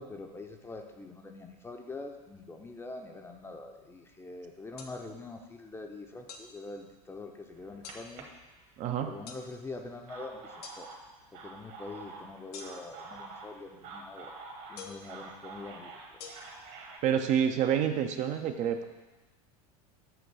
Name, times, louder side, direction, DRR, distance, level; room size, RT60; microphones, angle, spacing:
voice 1, 0.0-8.3 9.0-10.9 11.3-14.3 14.7-16.0, left 3 dB, 10° left, 4 dB, 0.6 m, -44 dB
sound 1, 4.8-4.9 6.3-6.5 7.8-8.0 9.3-9.4 10.6-10.8 12.5-13.0 14.8-15.1 16.2-16.3, left 6 dB, 85° left, 0.9 m, -45 dB
sound 2, 7.5-9.1 9.8-17.0, right 3 dB, 55° right, 1.4 m, -47 dB
voice 2, 8.8-9.1 17.0-18.8, right 8 dB, 40° right, 7 dB, 0.5 m, -28 dB
7.9 x 3.0 x 6.2 m, 1.1 s
supercardioid pair, 115°, 19 cm